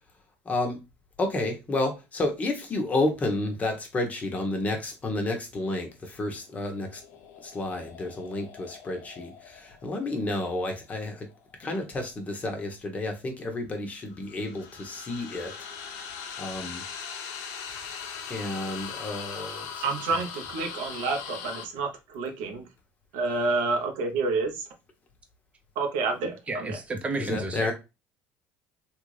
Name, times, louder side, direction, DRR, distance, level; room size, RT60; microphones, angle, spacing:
voice 1, 0.5-0.8 1.2-7.0 7.4-11.3 11.6-15.5 16.4-16.8 18.3-19.8 27.1-27.7, left 2 dB, 30° left, 1.0 m, -31 dB
sound 1, 6.5-11.7 14.1-21.7, left 7 dB, 70° left, 0.7 m, -41 dB
voice 2, 19.8-22.7 23.1-24.7 25.8-26.7, right 3 dB, 85° right, 0.9 m, -29 dB
voice 3, 26.5-27.7, right 2 dB, 25° right, 0.8 m, -31 dB
3.4 x 2.5 x 3.2 m
supercardioid pair, 110°, 5 cm